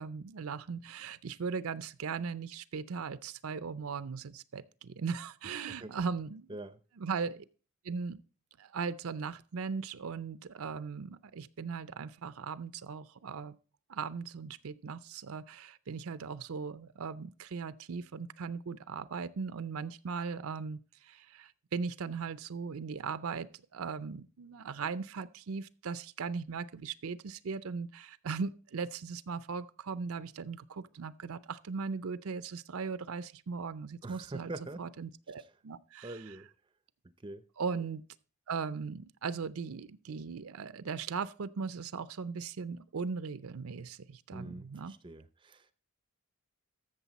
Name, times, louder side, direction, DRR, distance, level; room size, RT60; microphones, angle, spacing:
voice 1, 0.0-6.5 7.0-7.4 7.8-8.2 8.6-13.6 13.9-34.5 34.8-36.1 37.6-38.0 38.5-44.9, right 5 dB, 70° right, 0.5 m, -38 dB
voice 2, 5.4-5.9 6.5-6.8 34.0-34.8 35.4-35.5 36.0-36.5 37.2-37.5 44.3-45.7, right 2 dB, 20° right, 0.5 m, -44 dB
14.0 x 6.7 x 4.1 m
head